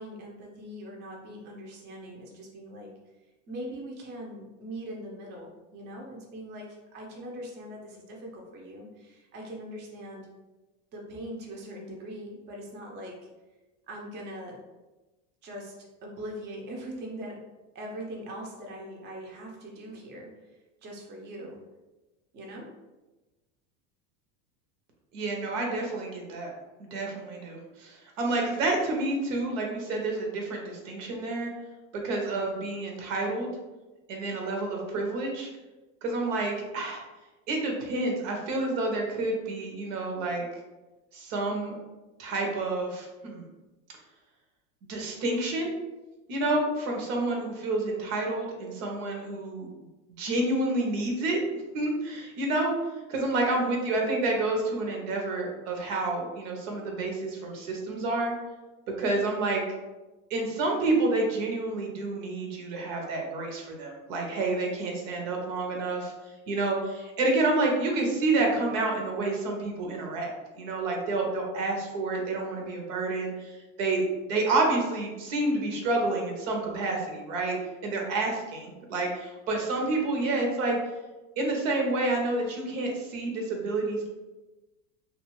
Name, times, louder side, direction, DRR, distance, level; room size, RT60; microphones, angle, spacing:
voice 1, 0.0-2.9 3.5-10.2 10.9-13.2 13.9-14.6 15.4-17.4 17.7-21.6 22.3-22.7, right 1 dB, 30° right, -1 dB, 0.5 m, -41 dB
voice 2, 25.1-26.5 26.8-31.5 31.9-33.5 34.1-35.5 36.0-37.0 37.5-40.4 41.1-41.8 42.2-43.4 44.9-45.7 46.3-49.7 50.2-51.4 51.7-52.7 53.1-58.3 59.0-59.6 60.3-66.1 66.5-74.0 74.3-77.6 77.8-80.8 81.4-84.1, right 2 dB, 80° right, 1 dB, 0.8 m, -29 dB
2.3 x 2.3 x 3.0 m, 1.1 s
supercardioid pair, 130°, 37 cm